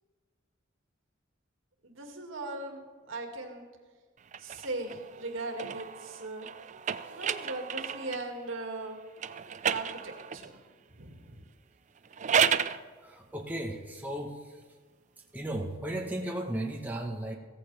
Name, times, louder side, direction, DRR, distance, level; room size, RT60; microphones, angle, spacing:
voice 1, 1.8-3.6 4.4-6.5 7.1-9.0 9.7-10.6 11.0-11.4, right 2 dB, 75° right, 2 dB, 2.2 m, -39 dB
sound 1, 4.3-8.3 9.2-10.5 12.0-12.8, right 7 dB, 35° right, 0.4 m, -32 dB
voice 2, 13.0-14.4 15.3-17.4, right 1 dB, 10° right, 0 dB, 1.1 m, -35 dB
16.0 x 14.5 x 3.4 m, 1.5 s
head